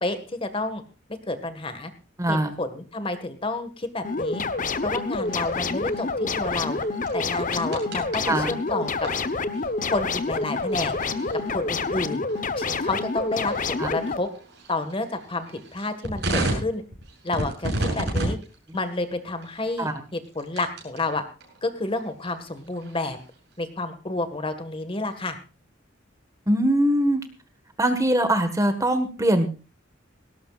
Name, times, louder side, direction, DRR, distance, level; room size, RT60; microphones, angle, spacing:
voice 1, 0.0-0.8 1.3-1.9 2.3-4.4 4.8-6.8 7.1-9.1 9.8-10.9 11.5-12.2 12.6-14.3 14.7-16.8 17.2-18.4 18.7-21.2 21.6-23.2 23.6-25.4, left 2 dB, 30° left, 9 dB, 1.7 m, -30 dB
voice 2, 2.2-2.5 8.3-8.5 13.8-13.9 19.8-19.9 26.5-27.2 27.8-29.7, right 1 dB, 15° right, 8 dB, 1.6 m, -22 dB
sound 1, 4.0-14.2, left 3 dB, 45° left, 1.0 m, -28 dB
sound 2, 5.2-21.0 21.4-23.5, right 1 dB, 65° right, 7.2 m, -35 dB
18.5 x 18.0 x 2.5 m, 0.33 s
head